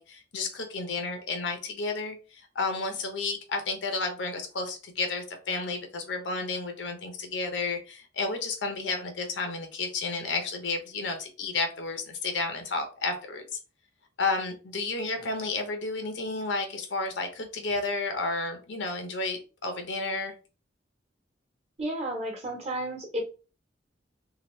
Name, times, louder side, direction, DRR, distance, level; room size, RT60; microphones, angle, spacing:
voice 1, 0.0-13.4 14.2-20.3, left 3 dB, 75° left, 5 dB, 0.8 m, -32 dB
voice 2, 21.8-23.2, right 1 dB, 35° right, 0 dB, 1.0 m, -32 dB
2.9 x 2.3 x 3.1 m, 0.34 s
head